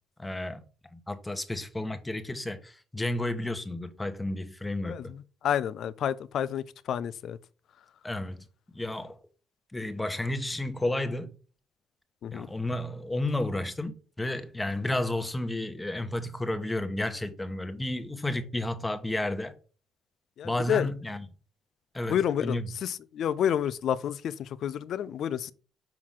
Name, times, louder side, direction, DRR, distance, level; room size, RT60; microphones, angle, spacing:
voice 1, 0.2-0.6 0.9-5.1 8.0-8.5 8.7-9.2 9.7-11.3 12.3-19.5 20.4-21.3 21.9-22.8, left 1 dB, 15° left, 1.2 m, -32 dB
voice 2, 4.8-7.4 12.2-12.5 20.4-20.9 22.1-25.5, left 9 dB, 70° left, 0.4 m, -30 dB
5.9 x 4.7 x 3.8 m
supercardioid pair, 65°, 0 cm